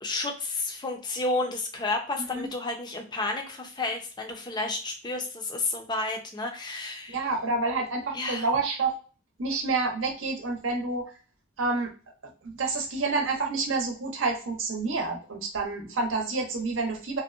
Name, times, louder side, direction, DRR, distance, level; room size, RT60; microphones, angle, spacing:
voice 1, 0.0-7.3 8.1-8.5, left 2 dB, 20° left, 3 dB, 0.5 m, -31 dB
voice 2, 7.1-8.9 9.4-11.1 11.6-11.9 12.4-17.2, right 3 dB, 80° right, 1 dB, 0.7 m, -28 dB
2.6 x 2.0 x 2.4 m, 0.36 s
head